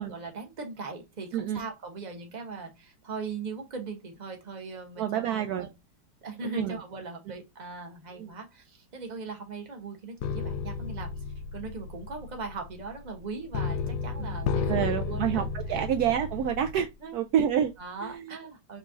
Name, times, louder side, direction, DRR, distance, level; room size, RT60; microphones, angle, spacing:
voice 1, 0.0-5.7 6.2-11.1 11.5-15.8 17.0-17.2 17.8-18.8, right 4 dB, 30° right, 0.9 m, -39 dB
voice 2, 5.0-5.7 6.5-6.8 8.2-8.3 14.2-16.9 17.1-17.7 18.0-18.4, right 9 dB, 85° right, 0.8 m, -28 dB
sound 1, 10.2-16.8 17.4-17.7, left 5 dB, 75° left, 0.9 m, -33 dB
5.3 x 3.3 x 2.3 m
omnidirectional pair, 2.2 m